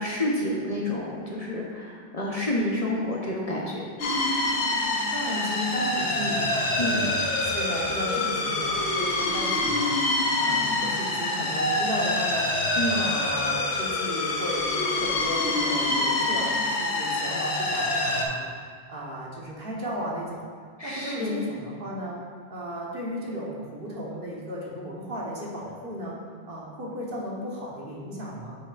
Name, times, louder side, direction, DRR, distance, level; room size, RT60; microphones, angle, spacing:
voice 1, 0.0-3.8 6.8-7.0 12.8-13.0 20.8-21.4, left 1 dB, 35° left, -4 dB, 0.9 m, -29 dB
sound 1, 4.0-18.2, left 2 dB, 85° left, 1.1 m, -26 dB
voice 2, 5.1-7.1 7.4-10.0 10.4-20.4 20.8-22.2 22.5-26.2 26.4-28.6, equal, 55° right, -4 dB, 1.4 m, -35 dB
8.0 x 6.5 x 2.5 m, 2.1 s
omnidirectional pair, 1.1 m